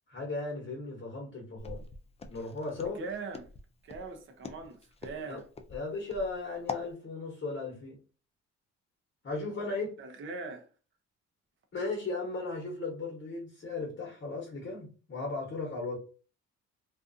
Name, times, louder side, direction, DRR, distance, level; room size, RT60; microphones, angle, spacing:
voice 1, 0.1-1.8 2.3-3.0 5.1-5.4 5.7-8.0 9.2-10.0 11.7-16.0, left 3 dB, 40° left, 1.0 m, -36 dB
Walk footsteps, 1.6-6.9, left 4 dB, 20° left, 0.3 m, -43 dB
voice 2, 2.9-3.5 3.8-5.4 10.0-10.7, right 4 dB, 40° right, 0.6 m, -41 dB
2.4 x 2.4 x 2.5 m
cardioid pair, 90°, 30 cm